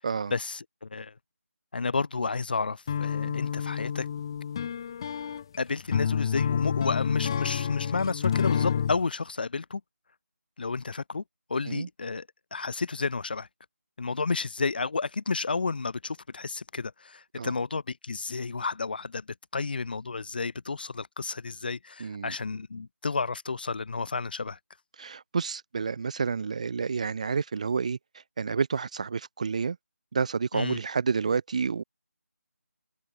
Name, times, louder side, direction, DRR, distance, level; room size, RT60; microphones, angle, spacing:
voice 1, 0.3-1.1 1.7-4.1 5.6-9.8 10.6-11.2 11.5-13.5 14.0-19.3 19.5-24.6 30.5-30.8, left 4 dB, 35° left, 7.3 m, -31 dB
sound 1, 2.9-9.0, left 8 dB, 15° left, 2.4 m, -29 dB
voice 2, 22.0-22.3 25.0-28.0 28.4-29.8 30.1-31.8, right 5 dB, 25° right, 2.7 m, -29 dB
figure-of-eight pair, 175°, 8 cm